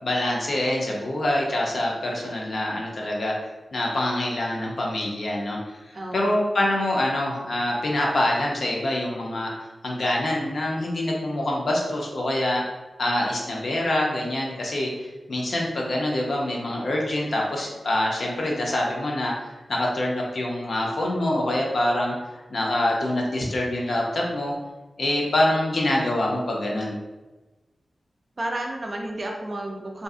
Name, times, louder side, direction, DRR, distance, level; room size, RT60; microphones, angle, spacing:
voice 1, 0.0-3.3 3.7-9.5 9.8-12.6 13.0-24.5 25.0-26.9, left 1 dB, 65° left, -2 dB, 0.5 m, -25 dB
voice 2, 5.9-6.4 28.4-30.0, right 1 dB, 40° right, 1 dB, 0.4 m, -31 dB
2.6 x 2.4 x 2.4 m, 1.2 s
wide cardioid pair, 110°, 0 cm